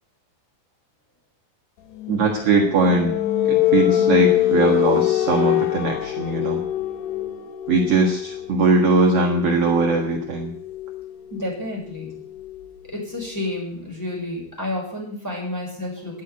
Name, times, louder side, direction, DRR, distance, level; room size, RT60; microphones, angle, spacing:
sound 1, 2.0-13.5, left 13 dB, 85° left, 3.2 m, -25 dB
voice 1, 2.1-3.1 3.5-6.6 7.7-10.5, right 3 dB, 50° right, 1 dB, 2.0 m, -20 dB
voice 2, 11.3-12.2 12.9-16.2, left 1 dB, 5° left, -4 dB, 5.8 m, -30 dB
11.5 x 11.0 x 9.3 m, 0.64 s
omnidirectional pair, 4.5 m